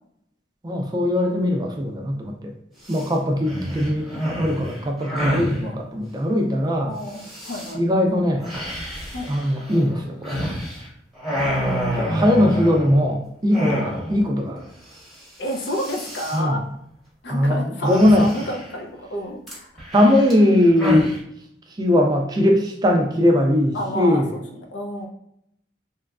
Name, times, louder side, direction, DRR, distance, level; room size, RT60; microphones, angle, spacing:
voice 1, 0.6-2.5 2.9-7.0 7.7-8.5 9.3-10.5 11.6-14.7 16.3-16.6 17.3-18.3 19.9-21.1 21.7-24.3, left 1 dB, 20° right, 2 dB, 0.3 m, -20 dB
sound 1, 2.8-3.1 3.4-5.6 7.1-7.7 8.4-10.9 11.1-13.1 13.5-14.3 14.6-14.7 14.9-15.2 15.5-16.4 17.8-18.8 19.5-21.2, equal, ahead, 0.9 m, -28 dB
voice 2, 6.9-7.8 9.1-9.3 13.5-13.8 15.4-16.6 17.2-19.7 23.7-24.2 24.6-25.1, equal, 70° left, 2 dB, 0.5 m, -30 dB
2.9 x 2.3 x 2.3 m, 0.74 s
head